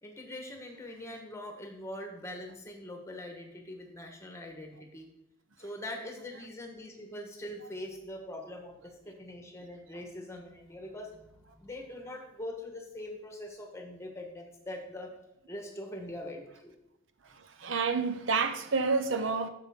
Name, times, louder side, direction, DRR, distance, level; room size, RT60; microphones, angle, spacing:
voice 1, 0.0-5.1 5.6-15.1 15.5-16.7, left 1 dB, 15° left, 1.2 m, -43 dB
voice 2, 17.2-19.5, right 4 dB, 65° right, 0.6 m, -29 dB
9.1 x 6.8 x 3.6 m
head